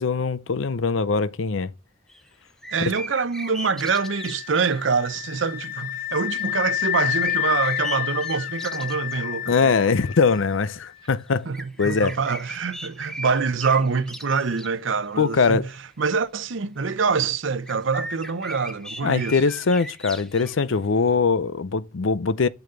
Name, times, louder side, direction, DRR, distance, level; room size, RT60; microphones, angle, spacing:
voice 1, 0.0-1.7 9.5-11.5 11.8-12.1 15.2-15.7 19.0-22.5, left 4 dB, 80° left, 0.6 m, -22 dB
sound 1, 2.1-2.3 2.6-5.0 6.3-9.4 9.7-9.8 11.0-15.0 15.7-15.8 17.7-20.6, equal, 5° left, 0.9 m, -38 dB
voice 2, 2.7-9.8 11.5-11.6 11.8-15.7 16.0-19.4, right 5 dB, 75° right, 0.7 m, -25 dB
sound 2, 3.8-10.6, left 13 dB, 55° left, 1.5 m, -29 dB
8.0 x 7.0 x 6.6 m
head